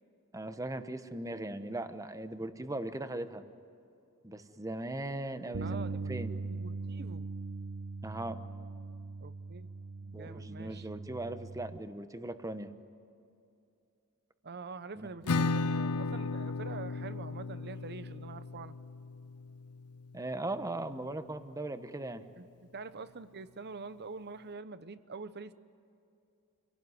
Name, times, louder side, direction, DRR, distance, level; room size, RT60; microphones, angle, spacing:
voice 1, 0.3-3.4 4.2-6.3 8.0-8.4 10.1-12.7 14.9-15.1 20.1-22.2, right 2 dB, 15° right, 10 dB, 1.0 m, -39 dB
Bass guitar, 5.5-11.8, right 3 dB, 75° right, 0.9 m, -40 dB
voice 2, 5.6-6.1 6.5-7.3 9.2-9.7 10.0-10.9 14.4-18.7 22.4-25.5, right 4 dB, 50° right, 13 dB, 0.9 m, -45 dB
Acoustic guitar / Strum, 15.3-20.7, left 3 dB, 80° left, 0.6 m, -35 dB
28.0 x 17.5 x 9.6 m, 2.7 s
head